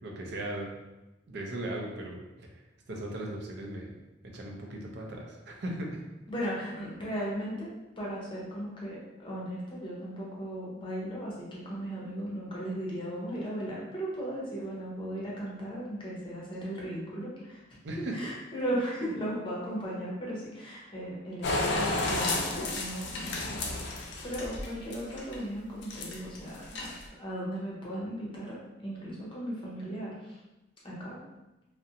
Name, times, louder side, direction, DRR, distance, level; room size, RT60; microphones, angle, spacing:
voice 1, 0.0-0.7 1.3-2.2 2.9-3.9 4.3-6.0 17.8-18.2, right 1 dB, 60° right, 0 dB, 0.5 m, -37 dB
voice 2, 6.3-7.7 8.0-17.8 18.1-28.5 28.8-30.4 30.8-31.2, equal, 30° left, -5 dB, 0.7 m, -37 dB
sound 1, 21.4-25.4 25.8-26.4 26.6-27.1, left 2 dB, 65° left, 0.4 m, -32 dB
2.4 x 2.1 x 2.7 m, 1.0 s
head